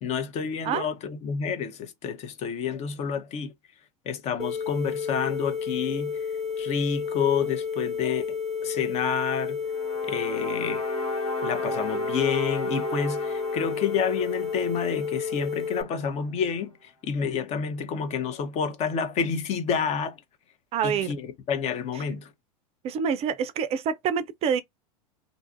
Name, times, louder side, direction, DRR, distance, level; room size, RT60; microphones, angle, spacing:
voice 1, 0.0-3.5 4.1-9.6 10.1-10.8 11.4-20.2 20.8-22.3, left 6 dB, 35° left, 0.6 m, -29 dB
sound 1, 4.4-15.8, left 6 dB, ahead, 0.7 m, -31 dB
sound 2, 9.7-15.9, right 2 dB, 70° left, 1.7 m, -36 dB
voice 2, 20.7-21.1 22.8-24.6, right 7 dB, 35° right, 0.4 m, -26 dB
2.5 x 2.4 x 2.4 m
hypercardioid pair, 95°, 18 cm